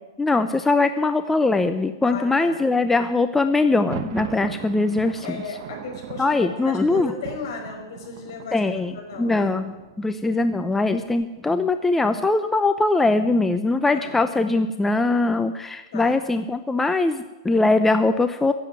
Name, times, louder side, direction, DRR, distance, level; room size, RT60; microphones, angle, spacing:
voice 1, 0.2-5.4 6.2-7.1 8.5-18.5, left 3 dB, 10° left, 9 dB, 0.7 m, -21 dB
voice 2, 2.0-2.7 5.2-8.6 8.9-9.6 13.9-14.2 15.9-16.2, left 4 dB, 65° left, 3 dB, 5.1 m, -36 dB
Thunder, 3.6-11.4, right 10 dB, 55° right, 1.2 m, -40 dB
16.0 x 7.9 x 9.4 m, 1.1 s
hypercardioid pair, 110°, 2 cm